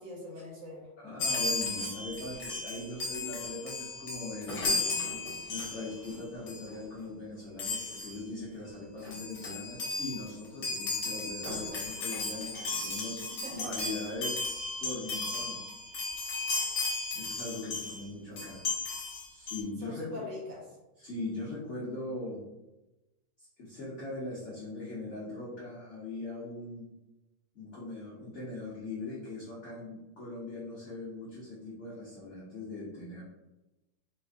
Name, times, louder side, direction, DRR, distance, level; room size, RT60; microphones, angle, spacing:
voice 1, 0.0-0.9 13.4-13.8 19.8-20.6, left 1 dB, 65° right, -2 dB, 1.4 m, -41 dB
voice 2, 1.0-4.7 5.5-13.2 13.5-14.4 14.8-15.7 17.1-18.6 19.3-20.3 21.0-22.4 23.4-26.9 27.5-33.2, left 2 dB, 70° left, -8 dB, 0.6 m, -40 dB
Chime, 1.2-6.2 6.5-6.7 7.6-8.2 8.8-8.9 9.0-18.0 18.4-19.6, left 3 dB, 55° left, 1.2 m, -35 dB
4.3 x 2.5 x 2.5 m, 1.0 s
omnidirectional pair, 2.4 m